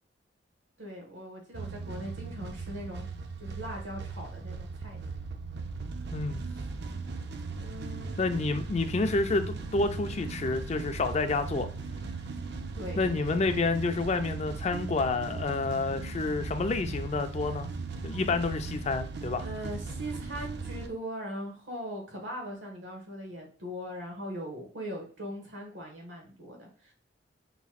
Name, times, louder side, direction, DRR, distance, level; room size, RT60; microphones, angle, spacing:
voice 1, 0.8-3.0 3.4-5.3 7.6-8.5 12.7-13.4 18.3-18.5 19.4-26.9, equal, 85° right, 0 dB, 1.4 m, -40 dB
sound 1, 1.5-20.9, right 3 dB, 60° right, 0.4 m, -38 dB
voice 2, 6.1-6.4 8.2-11.7 13.0-17.7 18.0-19.4, left 3 dB, 35° left, 8 dB, 0.4 m, -29 dB
5.6 x 3.0 x 2.3 m, 0.41 s
head